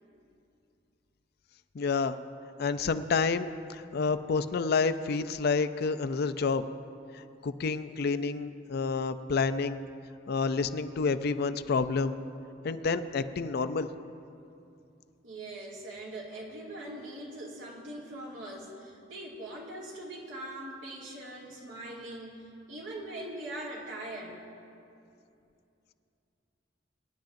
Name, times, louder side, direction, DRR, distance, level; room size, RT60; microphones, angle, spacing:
voice 1, 1.7-2.2 2.6-6.6 7.1-9.8 10.3-12.2 12.6-13.9, left 4 dB, 55° left, 11 dB, 0.4 m, -29 dB
voice 2, 15.2-24.4, right 1 dB, 85° right, -3 dB, 2.2 m, -42 dB
24.0 x 10.5 x 2.6 m, 2.6 s
head